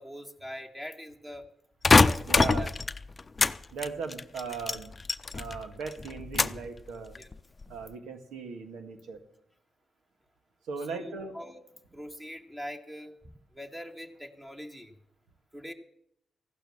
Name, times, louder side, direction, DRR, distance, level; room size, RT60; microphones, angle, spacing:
voice 1, 0.0-1.5 2.0-2.7 7.2-7.3 10.9-11.6 11.9-13.2 13.5-14.9 15.5-15.7, equal, 15° right, 3 dB, 1.8 m, -42 dB
sound 1, 1.8-3.6 3.8-5.6 5.9-6.7 7.2-7.6, left 3 dB, 35° left, 0.6 m, -24 dB
voice 2, 2.3-2.7 3.7-4.9 5.3-7.2 7.7-9.2 10.7-11.4, right 5 dB, 90° right, 7 dB, 1.9 m, -38 dB
15.0 x 12.0 x 7.2 m, 0.73 s
cardioid pair, 70°, 0 cm